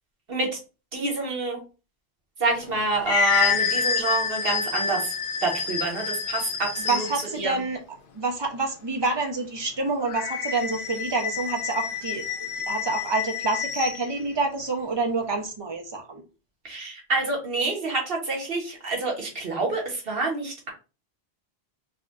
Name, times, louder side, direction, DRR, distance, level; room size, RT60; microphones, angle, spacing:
voice 1, 0.3-0.6 0.9-1.6 2.4-5.1 5.4-7.6 16.6-20.7, right 3 dB, 65° right, 0 dB, 1.4 m, -27 dB
sound 1, 2.6-7.3 10.0-14.0, left 6 dB, 60° left, 0.7 m, -28 dB
voice 2, 6.9-7.8 8.1-12.3 12.7-16.2, right 3 dB, 30° right, 2 dB, 0.7 m, -27 dB
4.9 x 2.4 x 2.4 m, 0.32 s
omnidirectional pair, 1.1 m